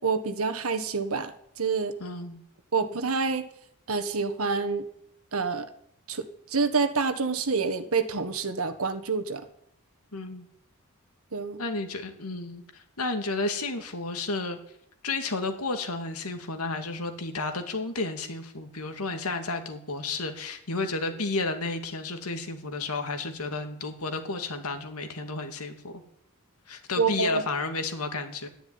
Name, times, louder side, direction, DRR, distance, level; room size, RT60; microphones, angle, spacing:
voice 1, 0.0-1.9 2.7-3.5 3.9-4.8 5.3-5.7 6.1-9.4 11.3-11.6 27.0-27.4, right 4 dB, 75° right, 9 dB, 1.5 m, -27 dB
voice 2, 2.0-2.4 10.1-10.5 11.6-14.6 15.0-26.0 26.7-28.5, left 3 dB, 85° left, 6 dB, 2.2 m, -32 dB
12.5 x 10.5 x 9.7 m, 0.71 s
head